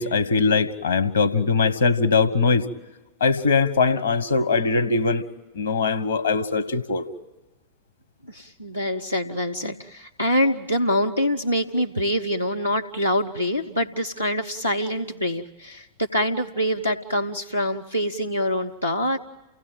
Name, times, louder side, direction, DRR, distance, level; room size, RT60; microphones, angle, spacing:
voice 1, 0.0-2.6 3.2-5.2 5.5-7.0, left 4 dB, 65° left, 9 dB, 1.4 m, -21 dB
voice 2, 8.3-19.2, equal, 90° left, 3 dB, 0.8 m, -25 dB
29.0 x 17.0 x 9.1 m, 1.2 s
figure-of-eight pair, 90°, 0 cm